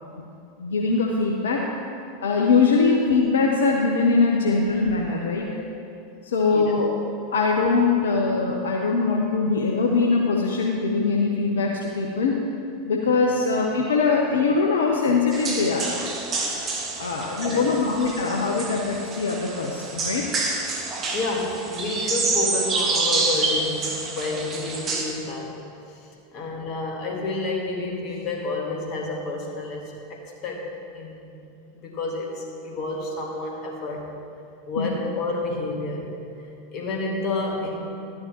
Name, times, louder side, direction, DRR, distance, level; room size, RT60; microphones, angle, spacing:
voice 1, 0.6-1.7 2.2-5.5 6.2-6.9 7.3-12.5 12.9-15.9 17.0-20.3 34.8-35.0, left 4 dB, 70° left, -1 dB, 0.8 m, -22 dB
sound 1, 15.3-25.0, right 3 dB, 30° right, 1.4 m, -28 dB
voice 2, 17.4-17.8 21.1-25.5 25.9-30.7 30.9-31.3 31.8-34.1 34.7-36.1 36.4-37.8, left 2 dB, 45° left, 0 dB, 1.7 m, -30 dB
12.0 x 9.7 x 3.0 m, 2.6 s
figure-of-eight pair, 85°, 0 cm